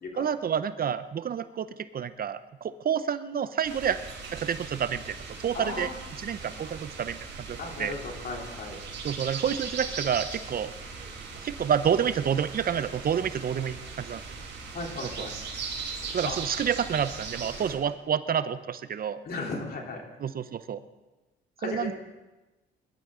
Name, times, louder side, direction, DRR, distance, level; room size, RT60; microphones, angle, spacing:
voice 1, 0.2-4.0 4.3-5.2 5.4-5.9 6.2-7.2 7.5-7.9 9.0-10.7 11.4-14.2 15.0-15.3 16.1-19.2 20.2-20.8 21.6-21.9, right 8 dB, 50° right, 13 dB, 0.7 m, -29 dB
sound 1, 3.6-17.7, right 4 dB, 65° right, 4.3 m, -39 dB
voice 2, 5.5-6.0 7.6-8.8 14.7-15.3 16.3-16.4 19.2-20.0 21.6-21.9, left 3 dB, 50° left, 0 dB, 3.4 m, -35 dB
21.0 x 12.5 x 3.8 m, 1.1 s
cardioid pair, 90°, 20 cm